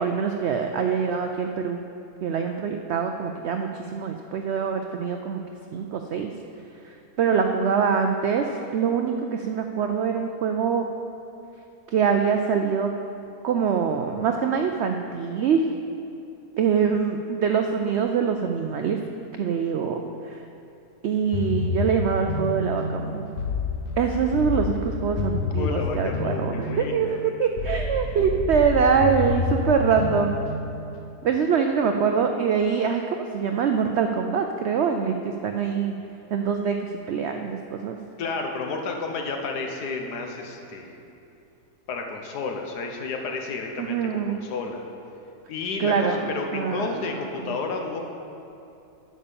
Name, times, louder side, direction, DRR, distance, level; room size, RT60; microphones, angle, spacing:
voice 1, 0.0-1.8 2.2-5.4 5.7-6.3 6.8-10.8 11.9-12.9 13.4-15.6 16.6-19.0 19.4-20.0 20.3-20.4 21.0-23.2 24.0-30.3 31.2-35.1 35.4-35.9 36.3-38.0 43.8-44.4 45.8-47.0, right 6 dB, 90° right, 4 dB, 0.5 m, -24 dB
sound 1, 21.3-31.1, left 4 dB, 60° left, 1.2 m, -29 dB
voice 2, 25.6-27.2 38.2-41.0 41.9-44.8 45.5-48.0, left 4 dB, 80° left, 2 dB, 1.5 m, -31 dB
10.0 x 5.5 x 6.9 m, 2.7 s
omnidirectional pair, 1.7 m